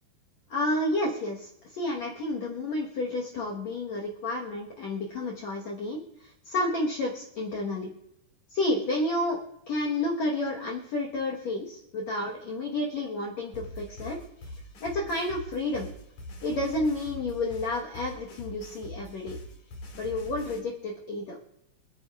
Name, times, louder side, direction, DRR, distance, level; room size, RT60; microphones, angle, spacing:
voice 1, 0.5-7.9 8.5-9.4 9.7-14.2 14.5-14.6 14.8-15.9 16.4-19.4 19.9-21.4, left 2 dB, 75° left, -1 dB, 1.6 m, -30 dB
sound 1, 13.5-20.6, left 1 dB, 45° left, 2.9 m, -43 dB
28.0 x 9.6 x 2.4 m, 0.80 s
omnidirectional pair, 5.1 m